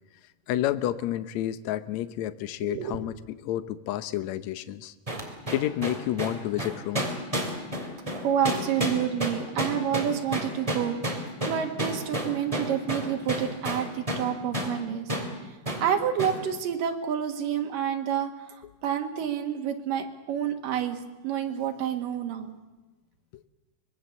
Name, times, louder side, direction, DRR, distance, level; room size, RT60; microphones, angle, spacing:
voice 1, 0.5-4.9 5.5-7.2, left 13 dB, 70° left, 13 dB, 1.8 m, -30 dB
voice 2, 2.6-3.0 8.2-11.0 11.5-15.1 15.8-18.6 18.8-21.0 21.2-22.5, right 9 dB, 75° right, 5 dB, 3.3 m, -28 dB
sound 1, 5.1-14.3 14.5-14.8 15.1-15.3 15.7-15.9 16.2-16.4, equal, 10° right, 2.5 m, -30 dB
24.5 x 21.0 x 7.2 m, 1.1 s
omnidirectional pair, 4.0 m